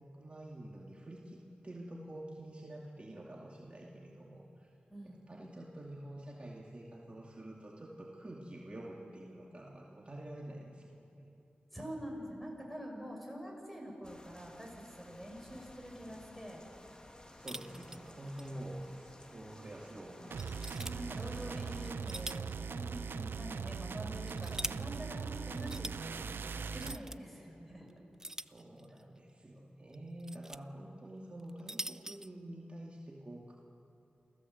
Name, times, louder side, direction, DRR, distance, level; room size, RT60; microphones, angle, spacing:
voice 1, 0.0-4.7 5.0-11.3 17.3-20.5 28.3-33.6, right 1 dB, 35° right, -3 dB, 2.4 m, -48 dB
voice 2, 4.9-5.2 11.7-16.6 17.7-18.2 20.7-25.9 26.1-27.9, equal, ahead, 0 dB, 6.2 m, -46 dB
sound 1, 14.0-21.9, left 1 dB, 25° left, 2.0 m, -55 dB
sound 2, 17.5-18.5 18.8-18.9 19.5-19.6 20.4-20.9 21.8-22.6 22.9-23.0 23.9-24.7 25.5-26.0 26.7-27.2 28.2-29.0 29.9-30.6 31.4-32.3, right 1 dB, 15° right, 0.5 m, -43 dB
sound 3, 20.3-27.0, right 5 dB, 80° right, 0.6 m, -40 dB
28.5 x 16.0 x 7.9 m, 2.8 s
wide cardioid pair, 80°, 4 cm